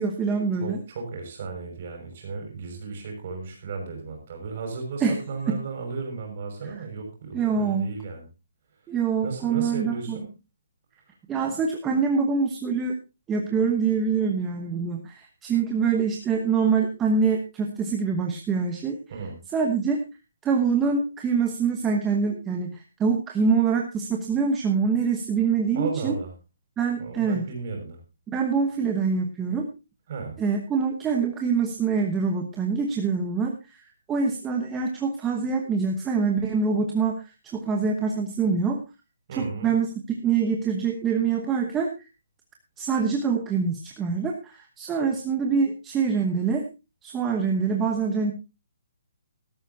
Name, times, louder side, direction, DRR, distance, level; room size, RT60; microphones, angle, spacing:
voice 1, 0.0-0.8 5.0-5.2 5.5-5.6 7.3-7.9 8.9-10.2 11.3-13.0 13.3-19.0 19.5-20.0 20.4-26.2 26.8-27.4 28.3-29.7 30.4-33.8 34.1-37.2 37.5-38.8 39.4-41.9 42.8-46.6 47.0-48.3, right 5 dB, 10° right, 2 dB, 1.0 m, -25 dB
voice 2, 0.6-8.3 9.2-10.3 19.1-19.4 25.7-26.3 27.0-28.0 30.1-30.4 39.3-39.7, right 4 dB, 35° right, 2 dB, 6.1 m, -34 dB
16.0 x 13.5 x 2.7 m, 0.28 s
hypercardioid pair, 175°, 0 cm